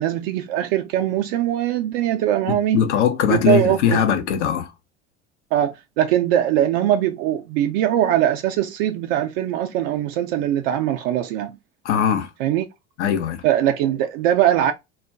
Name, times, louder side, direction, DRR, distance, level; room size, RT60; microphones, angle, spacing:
voice 1, 0.0-2.8 3.3-4.0 5.5-11.6 12.4-12.7 13.4-14.7, right 11 dB, 55° right, 0.5 m, -21 dB
voice 2, 2.5-4.7 11.8-12.3 13.0-13.4, left 8 dB, 70° left, 0.7 m, -20 dB
2.3 x 2.1 x 3.3 m
figure-of-eight pair, 75°, 36 cm